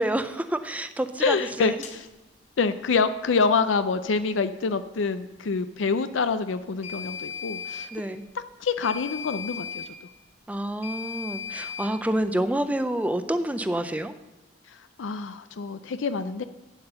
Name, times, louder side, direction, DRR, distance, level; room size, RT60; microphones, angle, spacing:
voice 1, 0.0-1.8 7.9-8.2 10.5-14.1, right 1 dB, 10° right, 10 dB, 0.5 m, -28 dB
voice 2, 1.2-2.1 2.6-7.9 8.3-9.8 14.7-16.4, left 4 dB, 90° left, 11 dB, 0.5 m, -26 dB
sound 1, 1.8-2.0 6.8-7.9 8.8-9.9 10.8-11.9, left 7 dB, 35° left, 1.2 m, -36 dB
8.7 x 8.0 x 6.7 m, 1.1 s
head